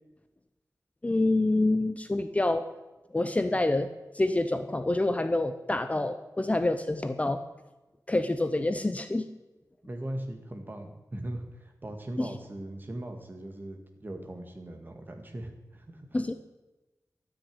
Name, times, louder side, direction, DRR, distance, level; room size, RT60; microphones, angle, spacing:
voice 1, 1.0-2.6 3.1-3.9 4.1-7.4 8.1-9.3 12.2-12.3 16.1-16.3, left 2 dB, 20° left, 9 dB, 0.6 m, -27 dB
voice 2, 9.9-16.1, right 1 dB, 30° right, 4 dB, 1.9 m, -39 dB
13.0 x 6.5 x 9.5 m, 1.1 s
wide cardioid pair, 110°, 6 cm